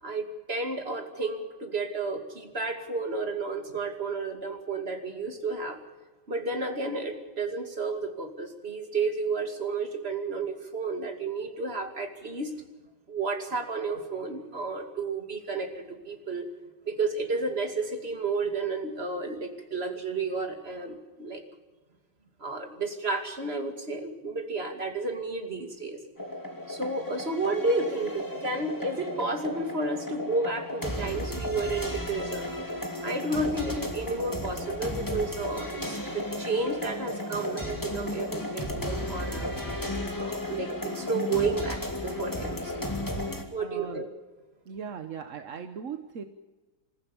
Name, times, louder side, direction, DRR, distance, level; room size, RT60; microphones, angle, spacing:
voice 1, 0.0-5.8 6.3-12.6 13.1-16.5 16.9-21.4 22.4-26.0 26.7-32.5 33.0-39.5 40.2-42.9 43.5-44.1, right 3 dB, 30° right, 4 dB, 2.5 m, -32 dB
sound 1, 26.2-43.4, left 1 dB, 10° left, 2.4 m, -34 dB
voice 2, 43.6-44.1 44.6-46.2, right 7 dB, 50° right, 7 dB, 1.1 m, -38 dB
27.5 x 14.5 x 7.0 m, 1.3 s
omnidirectional pair, 2.3 m